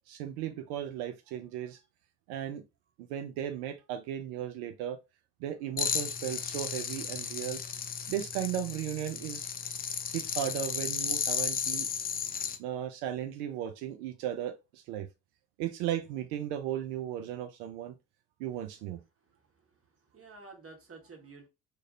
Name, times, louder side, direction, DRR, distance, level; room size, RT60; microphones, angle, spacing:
voice 1, 0.1-1.8 2.3-2.6 3.0-5.0 5.4-7.6 8.1-9.4 10.1-11.9 12.6-15.1 15.6-18.0 18.4-19.0, right 10 dB, 70° right, 0.5 m, -36 dB
sound 1, 5.8-12.6, left 7 dB, 20° left, 0.3 m, -34 dB
voice 2, 19.2-21.5, right 4 dB, 30° right, 1.3 m, -52 dB
2.7 x 2.5 x 3.9 m
hypercardioid pair, 55°, 48 cm